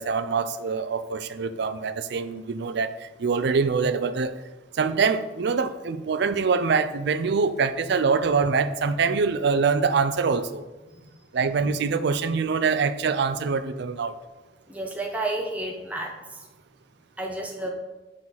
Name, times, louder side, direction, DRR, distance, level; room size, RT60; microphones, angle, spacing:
voice 1, 0.0-2.9 3.2-4.4 4.8-10.7 11.3-14.1, right 5 dB, 65° right, 0.5 m, -24 dB
voice 2, 14.7-16.4 17.2-17.7, right 2 dB, 10° right, 0.7 m, -31 dB
7.4 x 3.8 x 6.0 m
head